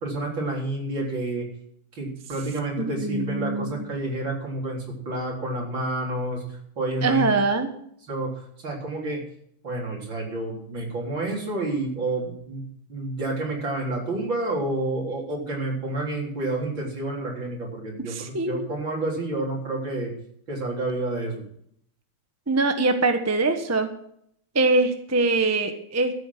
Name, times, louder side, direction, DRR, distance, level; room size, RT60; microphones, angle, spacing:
voice 1, 0.0-1.5 1.9-7.4 8.1-9.2 9.6-12.6 12.9-20.1 20.5-21.4, right 2 dB, 65° right, -1 dB, 4.5 m, -29 dB
voice 2, 2.8-3.8 7.0-7.7 18.1-18.7 22.5-23.9 24.5-26.1, right 3 dB, 10° right, 6 dB, 0.8 m, -23 dB
13.5 x 8.4 x 6.0 m, 0.69 s
omnidirectional pair, 2.3 m